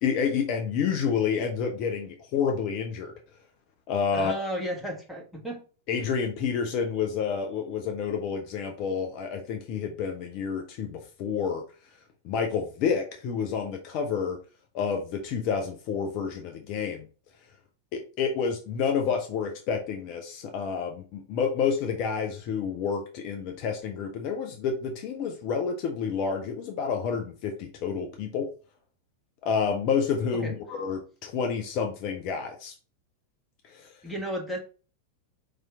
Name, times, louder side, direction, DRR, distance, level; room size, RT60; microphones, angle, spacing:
voice 1, 0.0-3.1 3.9-4.3 5.9-11.6 12.2-14.4 14.7-17.1 17.9-28.5 29.4-32.7 33.7-33.9, left 6 dB, 45° left, 4 dB, 0.6 m, -29 dB
voice 2, 4.1-5.6 30.4-30.6 34.0-34.6, equal, ahead, -1 dB, 1.3 m, -33 dB
4.8 x 2.8 x 3.6 m, 0.37 s
figure-of-eight pair, 90°, 0 cm